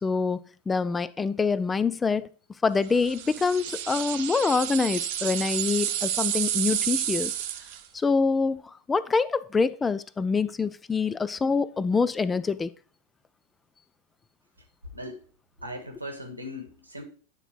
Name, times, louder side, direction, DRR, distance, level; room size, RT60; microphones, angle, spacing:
voice 1, 0.0-2.3 2.6-7.3 7.9-12.7, left 4 dB, 15° left, 0.3 m, -25 dB
sound 1, 3.0-7.9, right 11 dB, 50° right, 0.7 m, -30 dB
voice 2, 14.9-15.2 15.6-17.0, left 1 dB, 85° right, 1.6 m, -38 dB
9.1 x 3.9 x 4.6 m
figure-of-eight pair, 90°, 0 cm